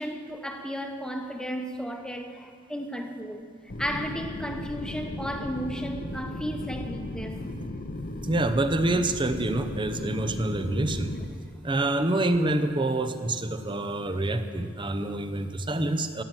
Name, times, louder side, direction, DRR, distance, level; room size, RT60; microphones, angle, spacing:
voice 1, 0.0-3.5 3.8-7.4, equal, 5° left, 1.1 m, -34 dB
sound 1, 3.7-11.3, left 1 dB, 45° left, 0.9 m, -36 dB
voice 2, 8.2-11.1 11.6-16.2, right 2 dB, 25° right, 0.7 m, -27 dB
16.5 x 7.4 x 9.1 m
head